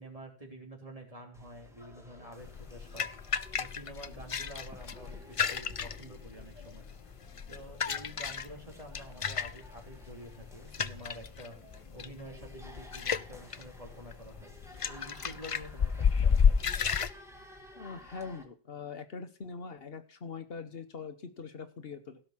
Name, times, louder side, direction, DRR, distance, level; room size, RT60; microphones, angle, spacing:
voice 1, 0.0-3.1 3.6-6.9 7.5-11.6 11.9-14.5 14.9-16.7, equal, 35° right, 0 dB, 3.4 m, -48 dB
sound 1, 1.3-18.4, left 1 dB, 5° right, 1.8 m, -54 dB
sound 2, 2.4-17.1, left 6 dB, 40° left, 0.5 m, -32 dB
voice 2, 17.8-22.2, left 5 dB, 70° left, 9 dB, 1.3 m, -43 dB
16.5 x 5.6 x 5.8 m, 0.37 s
omnidirectional pair, 1.1 m